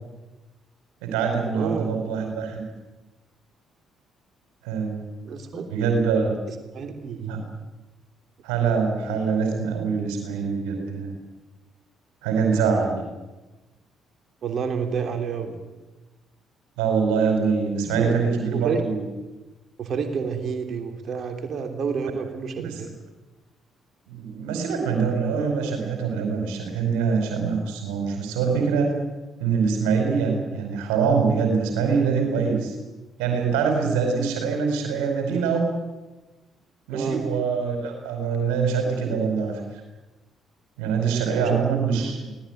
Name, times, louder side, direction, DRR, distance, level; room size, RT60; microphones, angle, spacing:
voice 1, 1.0-2.6 4.6-5.0 5.7-6.4 7.3-7.4 8.4-11.2 12.2-13.0 16.8-19.0 22.6-22.8 24.1-28.9 29.4-32.7 33.2-35.7 36.9-39.6 40.8-42.3, right 5 dB, 70° right, 3 dB, 4.9 m, -24 dB
voice 2, 1.5-1.9 5.3-5.7 6.7-7.5 14.4-15.6 17.8-18.2 18.5-18.8 19.8-22.9 36.9-37.2 41.3-41.6 42.0-42.2, right 6 dB, 55° right, 6 dB, 3.2 m, -29 dB
24.0 x 18.5 x 9.2 m, 1.1 s
figure-of-eight pair, 45°, 0 cm